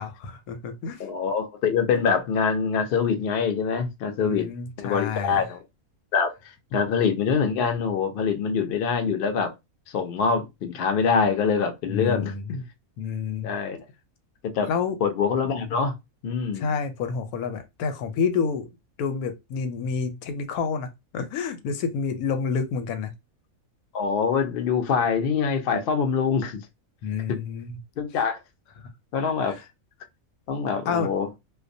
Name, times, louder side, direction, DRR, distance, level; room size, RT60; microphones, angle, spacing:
voice 1, 0.0-1.1 4.2-5.4 11.9-12.4 13.0-13.5 14.7-15.0 16.5-18.7 19.0-23.1 27.0-27.8 28.8-28.9 29.5-29.6 30.9-31.1, left 6 dB, 85° left, 1.0 m, -29 dB
voice 2, 1.0-4.5 4.8-5.6 6.1-6.3 6.7-9.5 9.9-12.6 13.4-13.8 14.5-14.7 15.0-15.9 16.2-16.7 23.9-26.6 28.0-28.4 29.1-29.6 30.5-31.3, left 6 dB, 65° left, 0.6 m, -24 dB
2.3 x 2.2 x 2.6 m
omnidirectional pair, 1.5 m